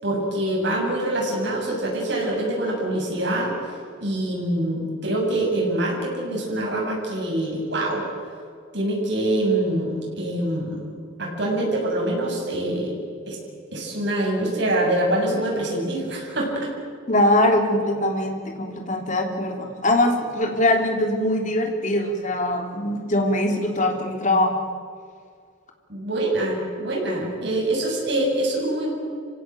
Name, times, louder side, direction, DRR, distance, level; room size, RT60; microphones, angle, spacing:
voice 1, 0.0-3.5 4.0-8.0 8.7-10.8 11.2-12.9 13.3-13.4 13.7-16.7 25.9-28.9, right 1 dB, 60° right, -2 dB, 7.7 m, -25 dB
voice 2, 17.1-24.6, left 1 dB, 40° left, 3 dB, 3.2 m, -22 dB
26.5 x 16.5 x 9.3 m, 2.1 s
head